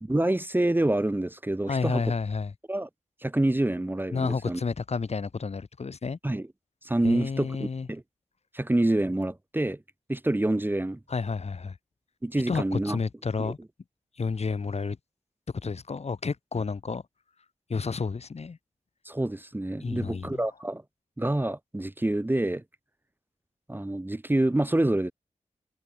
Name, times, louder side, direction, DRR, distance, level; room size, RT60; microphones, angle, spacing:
voice 1, 0.0-2.0 2.7-2.9 3.2-4.6 6.2-6.5 6.8-7.6 7.9-8.0 8.5-9.8 10.1-11.0 12.2-13.0 13.4-13.5 19.0-20.8 21.2-22.6 23.7-25.1, right 1 dB, 15° right, 1.0 m, -27 dB
voice 2, 1.7-2.5 4.1-6.2 7.0-7.9 11.1-11.7 12.5-13.6 14.2-15.0 15.6-17.0 17.7-18.6 19.8-20.4, left 4 dB, 55° left, 1.9 m, -30 dB
cardioid pair, 55°, 13 cm